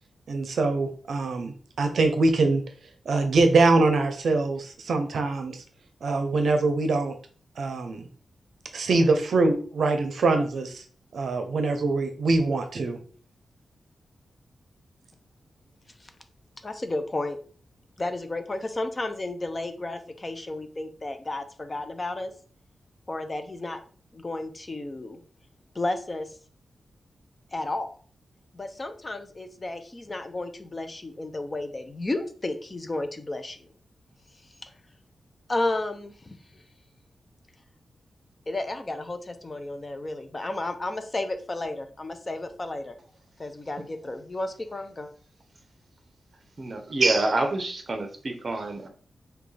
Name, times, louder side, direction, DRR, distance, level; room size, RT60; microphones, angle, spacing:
voice 1, 0.3-2.6 3.1-5.6 6.0-7.2 7.6-8.1 8.7-10.8 11.1-13.0, right 3 dB, 70° right, 6 dB, 0.6 m, -23 dB
voice 2, 16.6-17.4 18.0-22.3 23.1-23.8 24.1-25.2 25.7-26.3 27.5-28.0 28.5-33.7 35.5-36.6 38.5-42.9 43.4-45.1, left 2 dB, 25° left, 8 dB, 0.5 m, -32 dB
voice 3, 46.6-48.9, right 2 dB, 40° right, 5 dB, 0.8 m, -26 dB
5.9 x 2.3 x 3.3 m, 0.44 s
wide cardioid pair, 145°, 0 cm